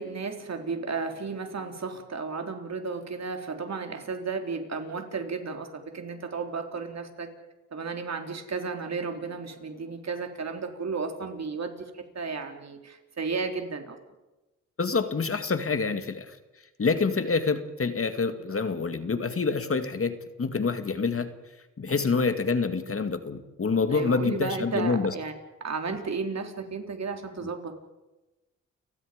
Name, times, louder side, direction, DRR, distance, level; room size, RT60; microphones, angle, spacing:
voice 1, 0.0-7.3 7.7-14.0 21.9-22.2 23.9-25.3 25.6-27.7, right 4 dB, 55° right, 5 dB, 3.6 m, -33 dB
voice 2, 14.8-16.4 16.8-21.3 21.8-25.1, left 4 dB, 45° left, 9 dB, 2.2 m, -27 dB
30.0 x 17.0 x 5.2 m, 1.1 s
cardioid pair, 65°, 32 cm